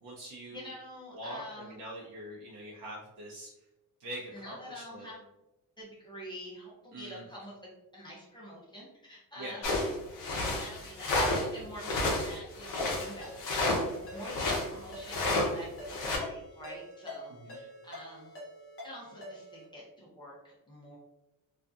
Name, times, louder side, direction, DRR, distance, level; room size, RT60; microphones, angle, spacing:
voice 1, 0.0-0.7 1.1-3.5 4.0-5.1 6.9-7.2 9.4-9.6 14.4-14.6 17.4-17.5, right 1 dB, 60° right, -5 dB, 0.6 m, -43 dB
voice 2, 0.5-1.8 4.3-5.2 5.8-9.6 10.4-13.5 13.8-18.3 18.8-21.0, equal, 10° left, -6 dB, 0.6 m, -47 dB
sound 1, 9.6-11.5 11.8-14.7 15.0-15.5 15.9-16.2, left 2 dB, 55° left, 0.6 m, -30 dB
Ringtone, 12.8-19.6, left 1 dB, 35° left, 0.9 m, -46 dB
2.6 x 2.4 x 2.3 m, 0.94 s
cardioid pair, 170°, 36 cm